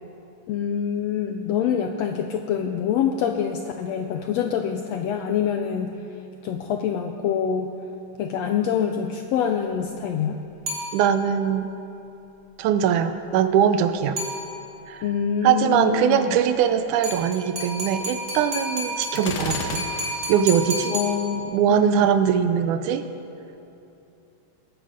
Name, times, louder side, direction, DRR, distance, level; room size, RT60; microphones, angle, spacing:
voice 1, 0.5-5.9 6.4-7.7 8.2-10.4 15.0-16.4 20.9-22.0, left 8 dB, 85° left, 5 dB, 1.5 m, -25 dB
sound 1, 10.7-11.4 14.2-14.9 17.0-21.7, equal, 45° right, 3.2 m, -32 dB
voice 2, 10.9-11.7 12.6-14.2 14.9-15.0 15.4-19.8 20.3-21.0 21.5-23.1, right 8 dB, 80° right, 10 dB, 2.0 m, -21 dB
Gunshot gunfire, 19.2-20.4, left 4 dB, 60° left, 1.2 m, -32 dB
21.0 x 9.0 x 5.1 m, 2.8 s
omnidirectional pair, 3.6 m